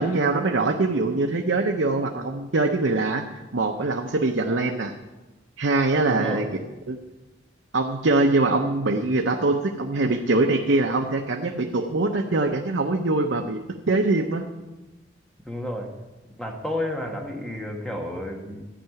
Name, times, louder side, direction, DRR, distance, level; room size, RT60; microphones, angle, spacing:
voice 1, 0.0-4.9 5.6-6.4 6.9-7.0 7.7-13.6 13.9-14.4, right 2 dB, 75° right, 3 dB, 0.8 m, -23 dB
voice 2, 6.1-6.5 15.4-15.9 16.4-18.7, left 1 dB, 5° left, 1 dB, 1.5 m, -31 dB
12.5 x 5.8 x 9.0 m, 1.1 s
head